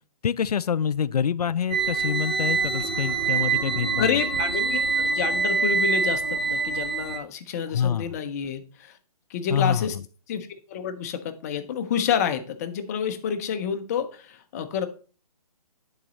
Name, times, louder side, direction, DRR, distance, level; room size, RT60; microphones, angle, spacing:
voice 1, 0.2-4.2 7.7-8.1 9.5-9.9, left 7 dB, 85° left, 0.4 m, -26 dB
sound 1, 1.7-7.2, right 4 dB, 15° right, 0.3 m, -25 dB
voice 2, 4.0-9.0 9.3-10.0 10.3-14.9, left 8 dB, 25° left, 0.6 m, -29 dB
10.0 x 4.0 x 4.0 m
hypercardioid pair, 150°, 20 cm